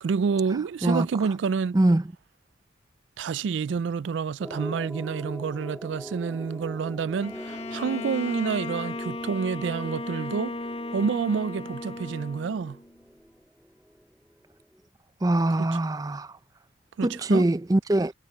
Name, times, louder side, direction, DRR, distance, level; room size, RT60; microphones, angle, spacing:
voice 1, 0.0-1.8 3.2-10.6 10.9-12.8 15.6-15.7 17.0-17.5, right 6 dB, 80° right, 0.4 m, -28 dB
voice 2, 1.7-2.0 15.2-16.3 17.0-18.1, right 1 dB, 20° right, 0.5 m, -23 dB
sound 1, 4.4-14.9, equal, ahead, 1.5 m, -43 dB
Bowed string instrument, 7.2-13.0, left 2 dB, 35° left, 1.4 m, -36 dB
head